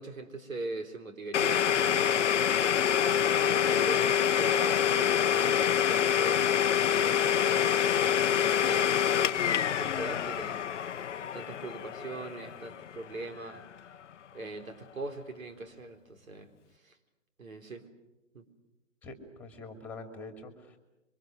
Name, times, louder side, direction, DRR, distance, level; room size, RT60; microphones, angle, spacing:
voice 1, 0.0-2.6 3.2-6.5 7.0-10.9 11.2-13.6 14.3-16.5 16.8-17.0 17.4-17.9 18.3-18.5, right 2 dB, 80° right, 7 dB, 4.0 m, -41 dB
Domestic sounds home sounds, 1.3-13.0, left 9 dB, 65° left, 0.8 m, -26 dB
voice 2, 19.0-20.8, left 3 dB, 5° left, 6 dB, 2.7 m, -45 dB
28.0 x 24.5 x 6.2 m, 0.96 s
hypercardioid pair, 145°, 40 cm